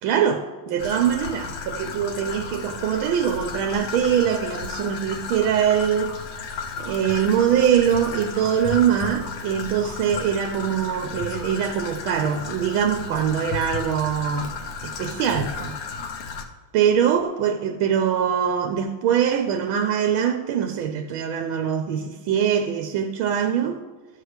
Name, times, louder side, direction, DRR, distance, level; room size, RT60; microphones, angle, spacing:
voice 1, 0.0-6.1 6.8-14.5 14.8-15.8 16.7-23.8, right 8 dB, 85° right, 1.4 m, -23 dB
Traffic noise roadway noise / Trickle dribble, 0.8-16.4, left 5 dB, 70° left, 1.4 m, -34 dB
14.0 x 6.5 x 3.1 m
omnidirectional pair, 2.3 m